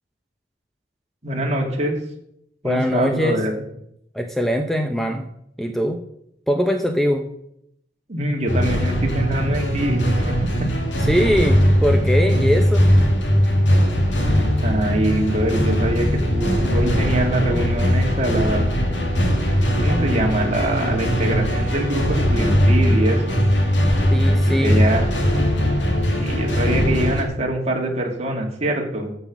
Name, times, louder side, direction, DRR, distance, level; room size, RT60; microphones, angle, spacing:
voice 1, 1.2-2.0 2.6-3.5 8.1-10.7 14.6-18.7 19.8-23.4 24.4-25.1 26.2-29.1, right 1 dB, 35° right, 1 dB, 2.4 m, -24 dB
voice 2, 2.6-3.4 4.1-5.2 5.6-6.0 6.5-7.2 11.1-12.9 24.1-24.8, equal, ahead, 4 dB, 0.7 m, -21 dB
sound 1, 8.5-27.2, equal, 80° left, 2.2 m, -19 dB
14.5 x 5.5 x 6.1 m, 0.76 s
head